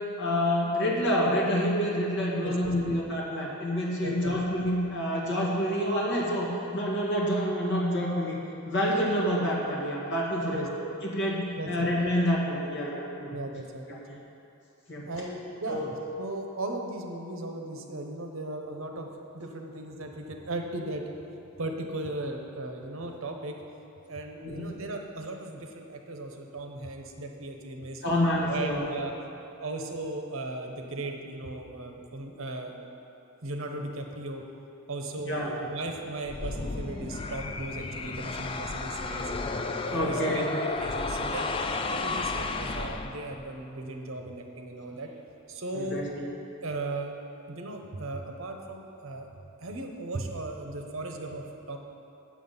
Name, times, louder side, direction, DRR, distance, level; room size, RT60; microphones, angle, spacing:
voice 1, 0.2-8.4 8.6-10.7 11.0-13.4 13.9-14.0 14.9-15.1 15.7-15.9 24.4-24.8 28.0-28.9 35.3-35.5 39.9-40.5 45.7-46.3, equal, 55° left, -4 dB, 1.8 m, -28 dB
voice 2, 2.4-2.9 4.0-4.4 10.5-10.7 11.6-11.9 13.3-14.2 15.1-15.8 16.2-19.1 19.3-21.0 21.6-23.6 24.1-28.0 28.5-29.1 29.6-32.8 33.4-34.4 34.9-39.5 39.9-41.5 41.9-45.1 45.5-46.1 46.6-47.1 47.5-49.3 49.6-51.8, right 2 dB, 65° right, 3 dB, 0.9 m, -37 dB
sound 1, 36.3-43.5, left 3 dB, 25° left, 0.3 m, -33 dB
8.5 x 7.5 x 5.5 m, 2.9 s
head